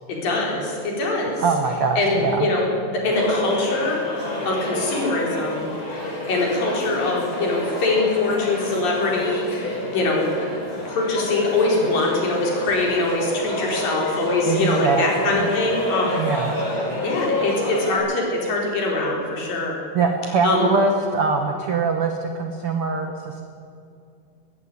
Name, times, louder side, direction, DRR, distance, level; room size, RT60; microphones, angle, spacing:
voice 1, 0.2-1.4 2.0-10.5 10.9-16.2 17.0-19.8 20.4-20.7, left 2 dB, 55° left, -2 dB, 5.8 m, -23 dB
voice 2, 1.4-2.5 14.5-15.5 16.1-16.5 19.9-23.4, right 4 dB, 70° right, 4 dB, 1.3 m, -23 dB
sound 1, 3.1-17.9, left 1 dB, 30° left, 5.7 m, -29 dB
19.5 x 17.0 x 9.7 m, 2.4 s
omnidirectional pair, 4.8 m